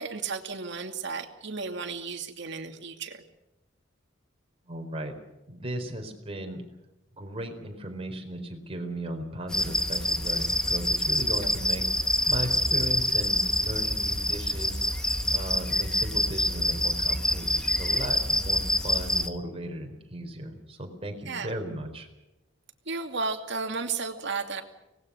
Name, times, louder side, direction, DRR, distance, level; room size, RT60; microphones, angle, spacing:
voice 1, 0.0-3.2 21.3-21.5 22.9-24.6, right 4 dB, 60° right, 5 dB, 2.6 m, -33 dB
voice 2, 4.7-5.2 5.5-6.6 7.2-22.1, right 1 dB, 30° right, 4 dB, 4.3 m, -36 dB
sound 1, 9.5-19.3, left 1 dB, 5° left, 1.4 m, -26 dB
25.0 x 19.5 x 6.4 m, 0.98 s
head